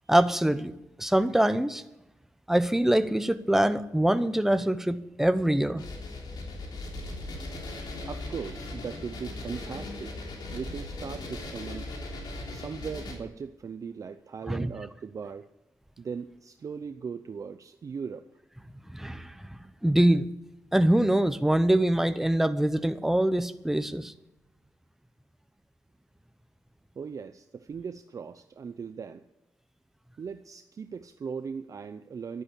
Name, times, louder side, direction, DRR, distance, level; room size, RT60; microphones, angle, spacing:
voice 1, 0.1-0.7 1.0-1.8 2.5-5.8 14.5-14.7 18.9-19.5 19.8-20.3 20.7-24.1, right 1 dB, 5° right, 0.8 m, -24 dB
sound 1, 5.8-13.1, left 2 dB, 85° left, 3.5 m, -38 dB
voice 2, 8.1-11.9 12.5-15.5 16.0-18.3 27.0-29.3 30.2-32.4, right 6 dB, 50° right, 0.6 m, -39 dB
11.5 x 9.7 x 8.3 m
cardioid pair, 100°, 7 cm